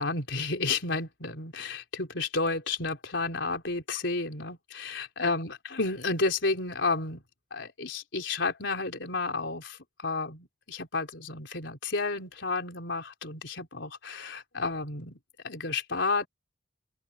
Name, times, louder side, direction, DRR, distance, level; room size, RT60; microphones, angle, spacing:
voice 1, 0.0-7.2 7.5-15.2 15.4-16.3, left 3 dB, 70° left, 4.2 m, -31 dB
open air
head